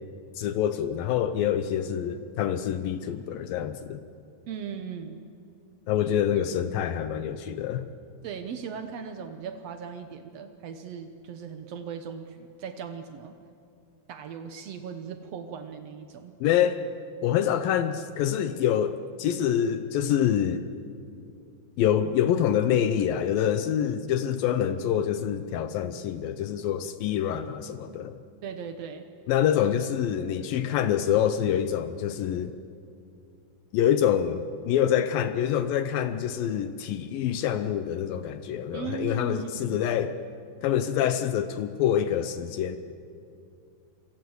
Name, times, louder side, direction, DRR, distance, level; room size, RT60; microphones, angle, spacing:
voice 1, 0.4-4.0 5.9-7.9 16.4-16.8 17.2-20.6 21.8-28.2 29.3-32.5 33.7-40.2 40.6-42.8, left 9 dB, 75° left, 10 dB, 2.4 m, -26 dB
voice 2, 4.5-5.2 8.2-13.3 14.1-16.3 28.4-29.1 38.7-39.8, right 6 dB, 85° right, 7 dB, 1.4 m, -38 dB
28.0 x 23.5 x 8.1 m, 2.4 s
omnidirectional pair, 4.5 m